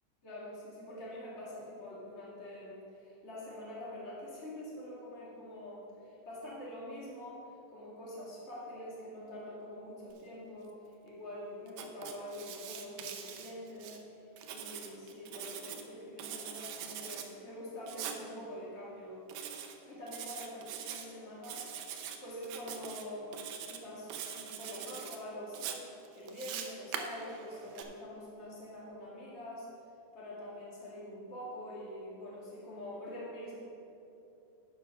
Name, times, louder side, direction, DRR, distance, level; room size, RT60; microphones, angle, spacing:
voice 1, 0.2-7.4 7.7-10.7 11.0-14.0 14.5-19.2 19.8-21.6 22.2-25.9 26.1-29.7 30.1-33.5, left 1 dB, 85° left, -7 dB, 0.6 m, -45 dB
Writing, 11.7-14.0 14.4-15.8 16.2-17.3 17.9-18.2 19.3-19.8 20.1-21.0 21.4-22.2 22.4-23.0 23.3-23.8 24.1-25.2 25.5-27.8, right 8 dB, 90° right, 1.9 m, -43 dB
10.0 x 5.6 x 5.6 m, 2.8 s
omnidirectional pair, 4.8 m